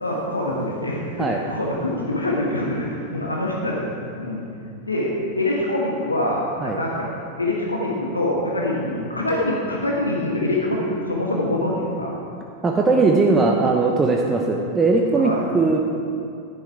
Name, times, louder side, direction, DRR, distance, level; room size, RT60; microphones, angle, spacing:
voice 1, 0.0-4.4 4.8-7.1 7.4-12.1 15.2-15.4, left 1 dB, 80° left, -2 dB, 1.4 m, -25 dB
voice 2, 12.6-15.8, right 3 dB, 15° right, 1 dB, 0.8 m, -19 dB
10.5 x 10.0 x 4.7 m, 2.5 s
figure-of-eight pair, 90°, 0 cm